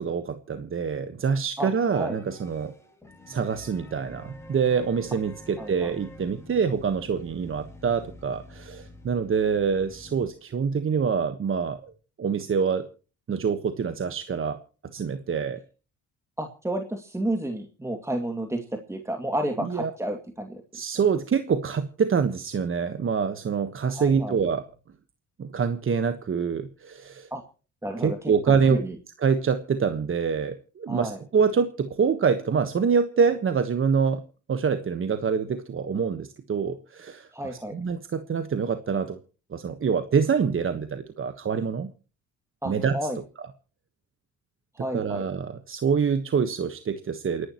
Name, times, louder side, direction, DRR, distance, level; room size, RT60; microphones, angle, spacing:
voice 1, 0.0-2.7 3.3-11.9 12.2-12.9 13.3-14.6 14.9-15.6 19.6-19.9 20.7-24.7 25.4-27.3 28.0-28.8 29.2-34.2 34.5-39.2 39.5-41.9 42.6-43.0 44.9-47.5, right 6 dB, 45° right, 9 dB, 1.4 m, -26 dB
voice 2, 1.6-2.2 5.6-5.9 16.4-20.6 23.9-24.4 27.3-27.4 27.8-28.3 28.7-29.0 30.9-31.2 37.3-37.7 42.6-43.2 44.7-45.2, right 1 dB, 10° right, 4 dB, 2.3 m, -31 dB
sound 1, 1.9-10.5 11.8-11.9 12.6-12.7, left 1 dB, 10° left, 5.6 m, -47 dB
28.5 x 11.5 x 3.1 m, 0.37 s
cardioid pair, 90°, 30 cm